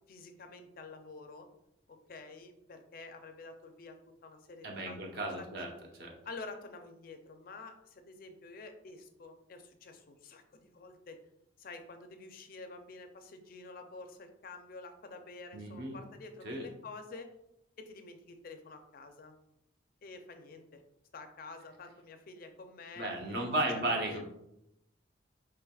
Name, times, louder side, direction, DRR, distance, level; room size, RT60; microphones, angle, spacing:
voice 1, 0.1-1.5 1.9-4.0 4.2-5.7 6.2-11.2 11.6-17.3 17.8-19.3 20.0-20.8 21.1-23.6 24.0-24.2, left 3 dB, 50° left, 7 dB, 0.4 m, -49 dB
voice 2, 4.6-5.7 6.0-6.2 15.5-16.0 16.4-16.7 23.0-24.3, right 1 dB, 55° right, 0 dB, 0.8 m, -34 dB
4.7 x 3.0 x 2.3 m, 0.81 s
head